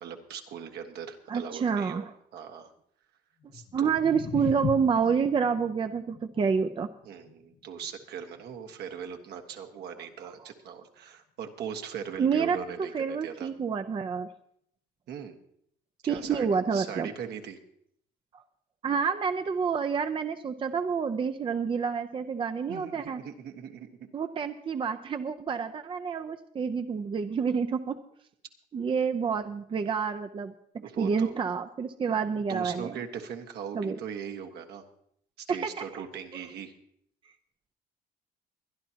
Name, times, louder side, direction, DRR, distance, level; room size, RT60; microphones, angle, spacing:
voice 1, 0.0-2.0 2.3-2.7 3.5-3.9 7.0-13.5 15.1-15.4 16.0-17.6 22.7-23.9 30.8-31.3 32.5-34.8 35.4-36.7, right 7 dB, 75° right, 4 dB, 1.5 m, -40 dB
voice 2, 1.3-2.0 3.7-6.9 10.2-10.3 12.2-12.6 12.9-14.3 16.1-17.1 18.3-18.4 18.8-23.2 24.1-28.0 28.7-33.0 33.7-34.0 35.5-35.8 36.3-36.4, right 6 dB, 30° right, 8 dB, 0.6 m, -28 dB
sound 1, 3.4-9.6, left 7 dB, 40° left, 0.7 m, -40 dB
23.5 x 10.5 x 2.9 m, 0.68 s
cardioid pair, 110°, 17 cm